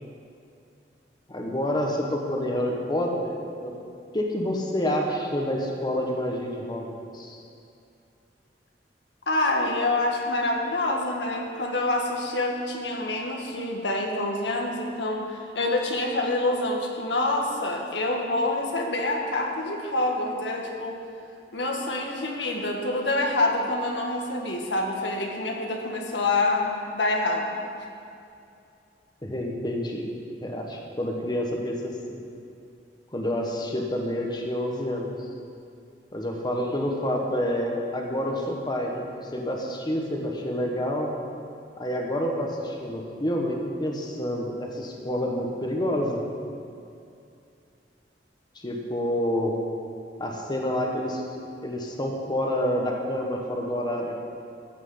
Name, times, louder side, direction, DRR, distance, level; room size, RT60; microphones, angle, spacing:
voice 1, 1.3-3.4 3.6-3.7 4.1-7.4 29.2-30.1 30.4-32.2 33.1-35.1 36.1-41.1 41.8-46.2 48.6-49.5 50.2-51.2 51.6-54.1, left 1 dB, 25° left, 0 dB, 1.4 m, -28 dB
voice 2, 9.3-20.9 21.5-27.6, left 2 dB, 90° left, 1 dB, 1.7 m, -26 dB
14.5 x 6.3 x 7.9 m, 2.5 s
head